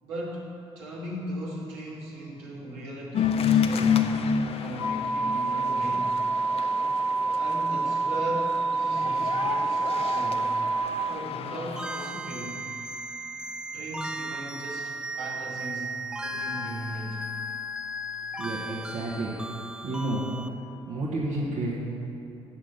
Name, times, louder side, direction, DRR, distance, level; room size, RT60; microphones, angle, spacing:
voice 1, 0.0-4.1 4.6-6.1 7.3-10.5 11.0-12.7 13.7-17.2, right 1 dB, 70° right, -5 dB, 2.1 m, -38 dB
sound 1, 3.1-12.1, left 7 dB, 40° left, 0.6 m, -30 dB
sound 2, 4.8-10.8, right 3 dB, 85° left, 2.0 m, -27 dB
sound 3, 11.8-20.5, equal, 5° right, 0.5 m, -36 dB
voice 2, 18.4-19.3 19.8-20.3 20.9-21.8, right 2 dB, 55° right, -6 dB, 1.6 m, -30 dB
8.8 x 6.4 x 6.7 m, 3.0 s
figure-of-eight pair, 45°, 15 cm